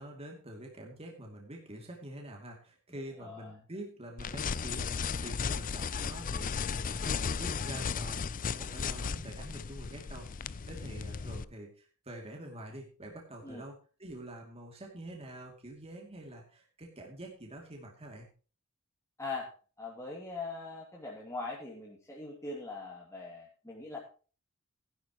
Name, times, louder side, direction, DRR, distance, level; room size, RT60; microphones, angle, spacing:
voice 1, 0.0-18.3, right 1 dB, 30° right, 0 dB, 2.7 m, -46 dB
voice 2, 3.2-3.5 13.4-13.6 19.2-19.5 19.8-24.0, left 3 dB, 15° left, -3 dB, 2.4 m, -41 dB
sound 1, 4.2-11.4, left 5 dB, 40° left, 0.5 m, -35 dB
16.0 x 11.0 x 3.0 m, 0.37 s
head